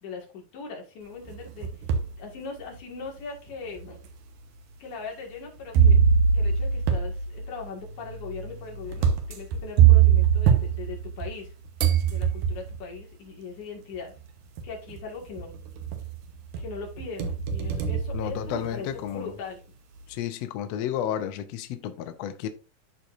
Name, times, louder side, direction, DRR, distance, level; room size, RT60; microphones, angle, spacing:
voice 1, 0.0-1.7 2.2-4.0 4.8-6.0 6.3-11.5 12.0-14.1 14.6-15.6 16.6-19.7, left 4 dB, 65° left, 3.3 m, -40 dB
sound 1, 1.3-2.2 2.8-2.9 3.8-3.9 5.7-11.5 11.8-12.8 14.0-14.1 14.6-15.0 15.4-16.2 16.5-18.9, right 8 dB, 70° right, 2.4 m, -22 dB
voice 2, 18.1-19.4 20.1-22.5, left 10 dB, 85° left, 1.4 m, -32 dB
13.0 x 4.4 x 2.5 m
omnidirectional pair, 3.9 m